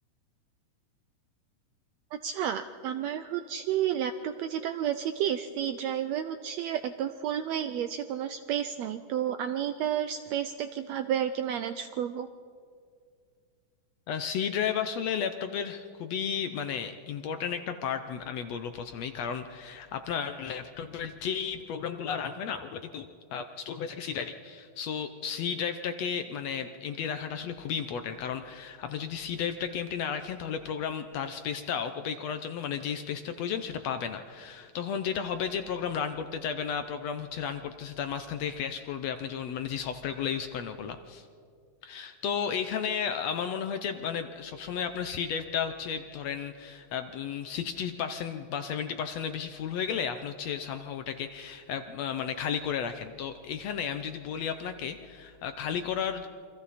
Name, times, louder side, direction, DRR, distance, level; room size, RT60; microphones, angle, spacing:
voice 1, 2.1-12.3, right 10 dB, 80° right, 9 dB, 1.6 m, -31 dB
voice 2, 14.1-41.2 41.8-56.3, left 7 dB, 70° left, 8 dB, 1.7 m, -33 dB
28.0 x 24.0 x 4.2 m, 2.2 s
omnidirectional pair, 3.6 m